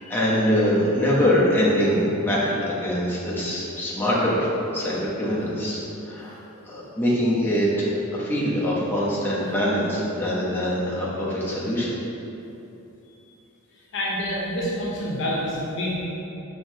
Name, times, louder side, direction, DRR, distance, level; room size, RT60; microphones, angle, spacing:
voice 1, 0.0-6.4 6.7-12.0, equal, 10° left, -7 dB, 0.7 m, -23 dB
voice 2, 13.9-15.9, equal, 60° left, -5 dB, 0.8 m, -27 dB
5.6 x 3.0 x 2.7 m, 2.9 s
head